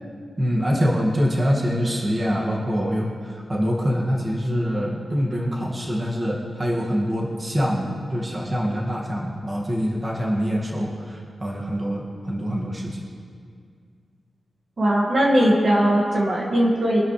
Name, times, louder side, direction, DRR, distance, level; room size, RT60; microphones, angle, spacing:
voice 1, 0.4-13.0, equal, 20° right, -3 dB, 2.0 m, -25 dB
voice 2, 14.8-17.0, equal, 40° right, -2 dB, 1.9 m, -19 dB
24.5 x 12.5 x 3.3 m, 2.2 s
wide cardioid pair, 180°, 0 cm